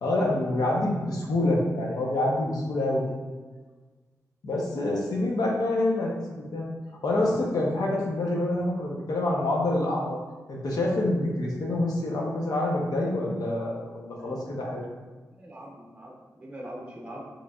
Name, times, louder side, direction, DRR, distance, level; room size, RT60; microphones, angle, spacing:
voice 1, 0.0-3.0 4.4-6.7 7.0-10.2 10.5-14.9, left 1 dB, 75° left, -3 dB, 0.8 m, -27 dB
voice 2, 14.2-14.5 14.8-14.9 15.3-17.3, right 1 dB, 15° right, -1 dB, 0.6 m, -43 dB
6.1 x 3.2 x 2.3 m, 1.3 s
wide cardioid pair, 95°, 7 cm